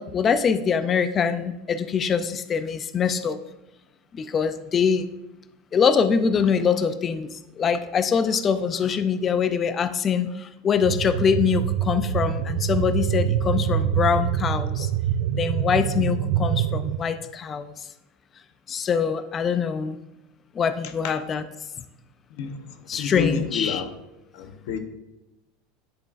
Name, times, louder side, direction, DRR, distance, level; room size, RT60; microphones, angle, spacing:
voice 1, 0.0-3.4 4.1-5.1 5.7-14.9 15.3-17.7 18.7-20.0 20.6-21.4 22.9-23.8, left 6 dB, 20° left, 11 dB, 0.3 m, -24 dB
sound 1, 10.8-17.0, right 10 dB, 60° right, 0.3 m, -25 dB
voice 2, 22.3-23.9 24.3-24.8, left 7 dB, 55° left, 8 dB, 0.8 m, -30 dB
10.0 x 7.2 x 2.5 m, 0.96 s
supercardioid pair, 170°, 0 cm